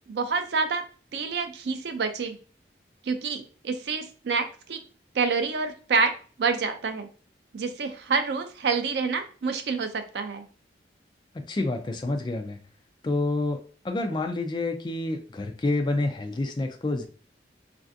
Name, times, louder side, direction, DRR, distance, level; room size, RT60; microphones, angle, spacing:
voice 1, 0.1-0.8 1.1-2.4 3.0-4.8 5.1-7.1 7.5-10.5, right 4 dB, 65° right, 8 dB, 0.4 m, -28 dB
voice 2, 11.3-12.6 13.0-17.1, left 2 dB, 25° left, 4 dB, 0.3 m, -28 dB
3.2 x 2.5 x 2.5 m, 0.39 s
head